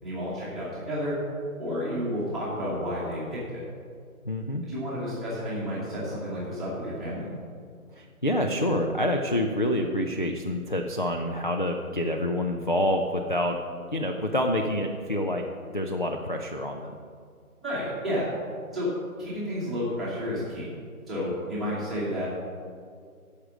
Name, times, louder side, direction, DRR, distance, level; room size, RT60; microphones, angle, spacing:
voice 1, 0.0-1.2 1.6-3.6 4.6-7.3 17.6-18.3 18.7-18.9 19.2-20.7 21.1-22.3, equal, ahead, -12 dB, 1.1 m, -31 dB
voice 2, 4.3-4.6 7.9-13.6 13.9-15.5 15.7-16.9, left 1 dB, 35° left, 2 dB, 0.4 m, -27 dB
12.5 x 5.0 x 6.2 m, 2.2 s
figure-of-eight pair, 155°, 44 cm